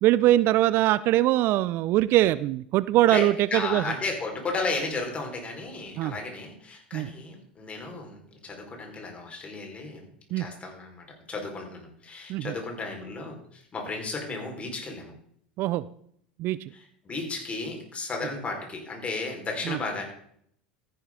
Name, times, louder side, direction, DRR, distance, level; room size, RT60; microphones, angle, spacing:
voice 1, 0.0-3.8 6.0-6.1 6.9-7.1 10.3-10.5 12.3-12.5 15.6-15.9 16.4-16.7 19.7-19.8, right 15 dB, 45° right, 18 dB, 0.4 m, -22 dB
voice 2, 3.1-10.1 10.4-15.1 16.7-20.0, left 3 dB, 25° left, 1 dB, 4.6 m, -34 dB
14.0 x 11.0 x 3.8 m, 0.66 s
hypercardioid pair, 80°, 5 cm